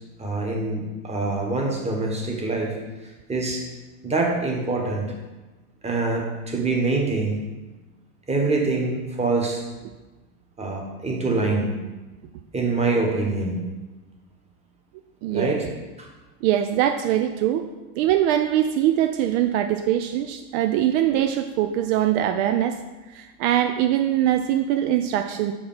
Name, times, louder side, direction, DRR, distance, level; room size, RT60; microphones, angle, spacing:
voice 1, 0.2-2.7 3.3-3.6 4.0-5.0 5.8-7.4 8.3-9.6 10.6-11.7 12.5-13.6 15.3-15.6 16.0-16.1, right 3 dB, 15° right, 0 dB, 1.3 m, -24 dB
voice 2, 15.2-15.6 16.4-17.7 18.0-22.8 23.1-25.5, right 11 dB, 60° right, 7 dB, 0.5 m, -22 dB
6.0 x 5.0 x 5.5 m, 1.2 s
supercardioid pair, 145°, 43 cm